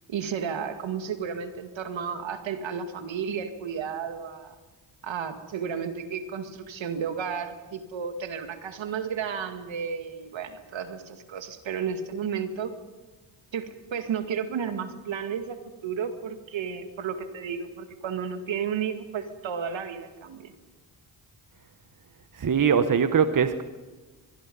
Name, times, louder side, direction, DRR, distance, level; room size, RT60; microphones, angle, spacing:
voice 1, 0.1-4.5 5.0-12.7 13.5-20.5, right 7 dB, 75° right, 8 dB, 2.1 m, -32 dB
voice 2, 22.3-23.6, right 6 dB, 45° right, 10 dB, 1.2 m, -22 dB
23.0 x 23.0 x 5.4 m, 1.3 s
cardioid pair, 60°, 46 cm